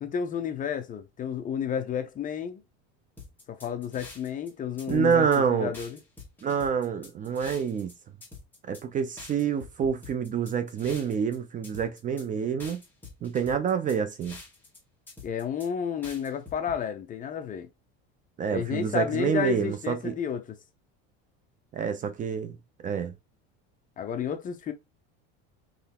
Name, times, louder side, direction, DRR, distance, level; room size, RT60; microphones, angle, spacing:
voice 1, 0.0-2.6 3.5-6.0 15.2-17.7 18.5-20.4 24.0-24.7, left 8 dB, 25° left, 0.6 m, -31 dB
sound 1, 3.2-4.5 4.8-5.4 5.7-7.9 8.2-8.8 9.2-11.4 11.6-12.2 12.6-14.8 15.1-15.7 16.0-16.8, left 3 dB, 5° left, 1.6 m, -46 dB
voice 2, 4.9-5.7 6.4-7.9 8.7-12.8 13.2-14.4 18.4-20.2 21.7-23.1, right 7 dB, 25° right, 0.5 m, -27 dB
4.0 x 3.2 x 4.2 m
cardioid pair, 145°, 31 cm